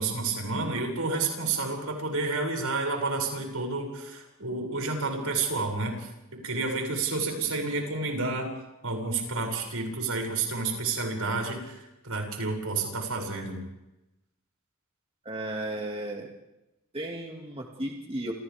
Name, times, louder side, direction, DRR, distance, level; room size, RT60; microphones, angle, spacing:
voice 1, 0.0-8.5 8.8-13.6, right 3 dB, 80° right, 1 dB, 7.0 m, -30 dB
voice 2, 15.3-16.3 16.9-18.3, right 1 dB, 25° right, 0 dB, 2.3 m, -34 dB
30.0 x 28.0 x 3.6 m, 0.95 s
head